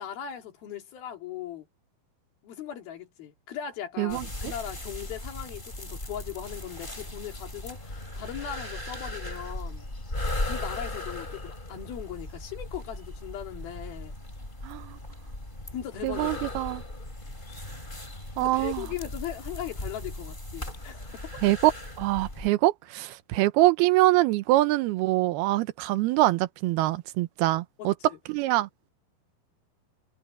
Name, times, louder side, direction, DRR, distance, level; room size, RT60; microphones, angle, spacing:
voice 1, 0.0-1.7 2.4-9.9 10.5-14.2 15.7-16.5 18.4-21.4 27.8-28.2, left 10 dB, 70° left, 4.3 m, -39 dB
sound 1, 4.1-22.5, left 1 dB, 10° left, 5.2 m, -37 dB
voice 2, 14.6-15.0 16.0-16.8 18.4-18.8 21.4-21.7 22.0-27.9 28.3-28.7, right 17 dB, 85° right, 2.7 m, -24 dB
omnidirectional pair, 4.5 m